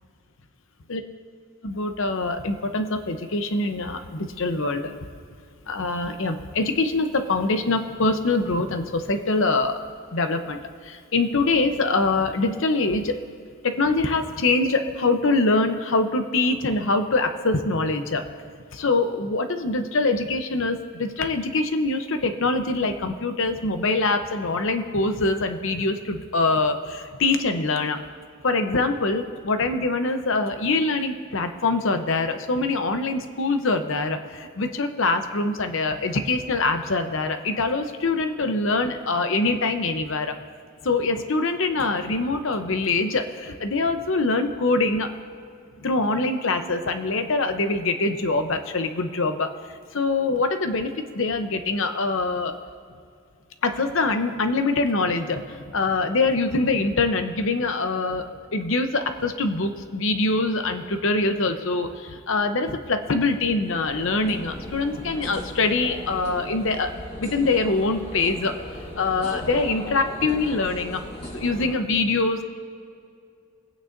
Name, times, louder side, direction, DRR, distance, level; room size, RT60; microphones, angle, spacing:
voice 1, 1.6-4.9 5.7-9.8 10.1-13.2 13.6-18.3 18.7-28.0 28.4-40.3 40.8-45.1 45.8-49.5 49.9-52.5 53.6-66.9 67.2-68.5 69.0-71.0 71.3-72.4, left 3 dB, 60° left, 7 dB, 0.7 m, -24 dB
sound 1, 63.3-71.8, left 1 dB, 25° left, 1.9 m, -38 dB
24.0 x 8.9 x 2.6 m, 2.3 s
head